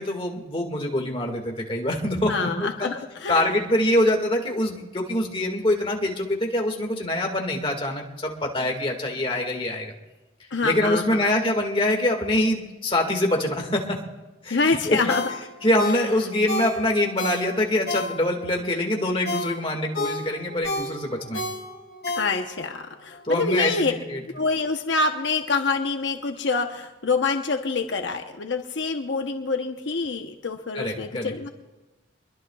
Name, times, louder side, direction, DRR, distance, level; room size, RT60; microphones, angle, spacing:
voice 1, 0.0-2.5 2.8-2.9 3.3-9.9 10.6-14.0 14.4-15.1 15.6-21.4 23.2-24.2 30.8-31.3, left 1 dB, 30° left, 2 dB, 1.9 m, -24 dB
voice 2, 2.3-3.5 10.5-11.3 14.5-15.2 22.2-23.9 24.3-31.5, left 4 dB, 75° left, 5 dB, 0.9 m, -26 dB
Ringtone, 15.1-18.5 18.9-22.7 23.1-23.2, left 2 dB, 55° left, 3.5 m, -31 dB
24.0 x 22.0 x 2.4 m, 1.1 s
head